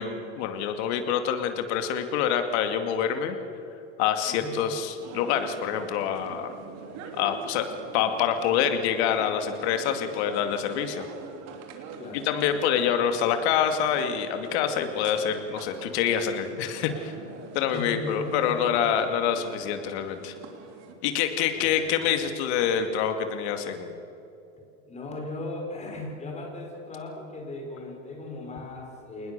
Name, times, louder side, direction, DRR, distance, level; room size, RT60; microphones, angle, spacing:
voice 1, 0.0-3.4 4.0-6.5 7.1-7.7 7.9-11.1 12.2-17.1 17.5-20.3 21.0-24.0, left 8 dB, 65° left, 7 dB, 2.5 m, -26 dB
voice 2, 4.2-4.6 12.0-12.3 17.7-18.7 21.5-21.8 22.1-22.2 24.9-29.3, left 2 dB, 20° left, 1 dB, 4.8 m, -37 dB
sound 1, 5.0-20.9, right 6 dB, 50° right, 3.3 m, -44 dB
27.5 x 20.0 x 6.9 m, 2.9 s
supercardioid pair, 135°, 35 cm